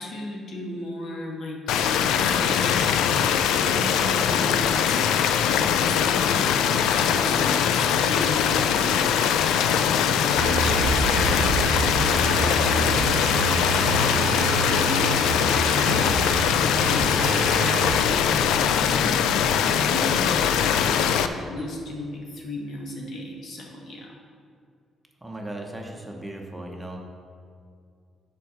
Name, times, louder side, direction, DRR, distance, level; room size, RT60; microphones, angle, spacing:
voice 1, 0.0-2.9 3.6-16.2 16.6-24.2, left 1 dB, 60° left, -1 dB, 1.5 m, -36 dB
sound 1, 1.7-21.3, left 8 dB, 90° left, 0.3 m, -22 dB
sound 2, 10.4-18.0, right 4 dB, 75° right, 0.6 m, -28 dB
voice 2, 25.2-27.0, right 1 dB, 10° right, 1 dB, 0.9 m, -37 dB
6.8 x 4.7 x 6.1 m, 2.3 s
cardioid pair, 90°, 0 cm